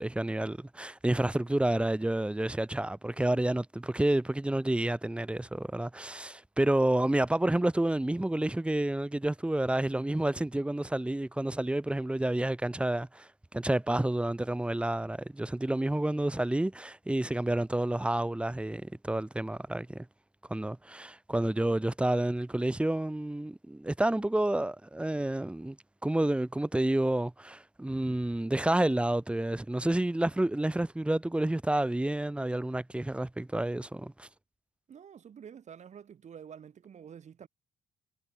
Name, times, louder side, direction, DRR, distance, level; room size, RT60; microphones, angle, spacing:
voice 1, 0.0-20.1 20.5-25.8 26.0-34.3, right 1 dB, 5° right, 1.1 m, -29 dB
voice 2, 34.9-37.5, right 8 dB, 45° right, 4.3 m, -48 dB
cardioid pair, 110°, 17 cm